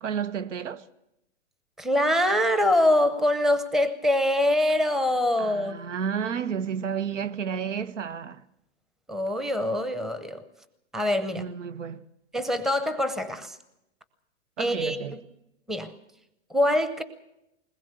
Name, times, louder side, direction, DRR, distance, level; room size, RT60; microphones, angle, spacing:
voice 1, 0.0-0.9 5.4-8.5 11.3-12.0 14.6-15.2, right 7 dB, 90° right, 1.1 m, -31 dB
voice 2, 1.8-5.8 9.1-10.4 10.9-11.4 12.3-13.6 14.6-15.0 15.7-15.9 16.5-17.0, left 1 dB, ahead, 0.7 m, -24 dB
21.0 x 20.0 x 6.7 m
hypercardioid pair, 140°, 36 cm